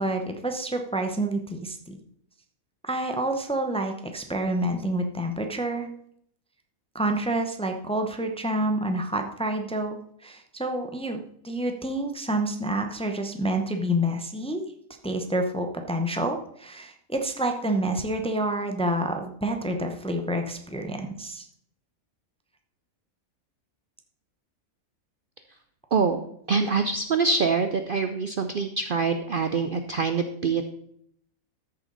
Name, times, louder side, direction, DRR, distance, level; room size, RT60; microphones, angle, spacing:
voice 1, 0.0-2.0 2.8-5.9 6.9-10.0 10.2-14.6 15.0-21.5, right 1 dB, 5° left, 5 dB, 0.7 m, -28 dB
voice 2, 25.9-30.7, right 4 dB, 55° right, 8 dB, 0.6 m, -25 dB
13.5 x 6.9 x 4.0 m, 0.69 s
omnidirectional pair, 1.5 m